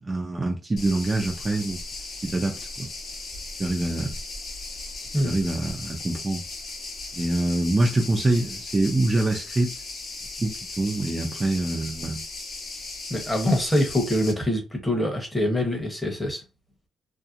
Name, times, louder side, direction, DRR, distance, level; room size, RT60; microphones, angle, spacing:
voice 1, 0.0-1.8 2.2-2.9 3.6-4.2 5.2-6.4 7.1-9.7 10.4-10.5 10.8-12.2, right 2 dB, 25° right, 0.5 m, -25 dB
sound 1, 0.8-14.3, left 3 dB, 50° left, 1.0 m, -37 dB
voice 2, 13.1-16.4, left 1 dB, 10° left, 1.0 m, -24 dB
2.7 x 2.0 x 2.5 m
cardioid pair, 90°, 0 cm